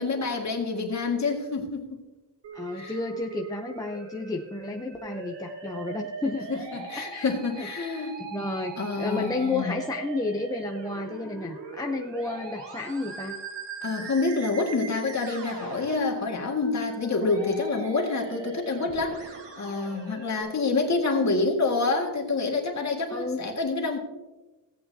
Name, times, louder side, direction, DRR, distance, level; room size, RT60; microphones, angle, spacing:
voice 1, 0.0-2.0 2.7-3.0 6.5-8.2 8.8-9.7 13.8-24.0, left 3 dB, 40° left, 1 dB, 1.8 m, -27 dB
Musical instrument, 2.4-20.4, right 4 dB, 75° right, 1.8 m, -41 dB
voice 2, 2.5-6.6 7.0-7.3 7.6-7.7 8.2-13.4 23.1-23.4, left 3 dB, 10° left, 1 dB, 0.6 m, -32 dB
16.5 x 8.3 x 2.7 m, 1.1 s
wide cardioid pair, 155°, 43 cm